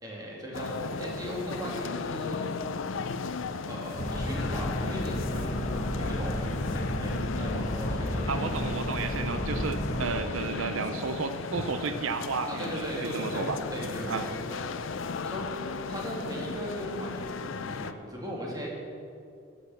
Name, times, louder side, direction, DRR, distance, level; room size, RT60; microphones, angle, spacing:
voice 1, 0.0-2.5 3.7-8.7 10.2-10.7 12.5-18.7, equal, 20° right, -3 dB, 2.4 m, -38 dB
sound 1, 0.5-17.9, left 4 dB, 75° left, 0.5 m, -36 dB
sound 2, 3.9-10.2, equal, 35° left, 1.0 m, -32 dB
voice 2, 8.3-13.6 14.1-14.3, right 5 dB, 85° right, 9 dB, 0.6 m, -33 dB
13.0 x 6.7 x 7.0 m, 2.5 s
head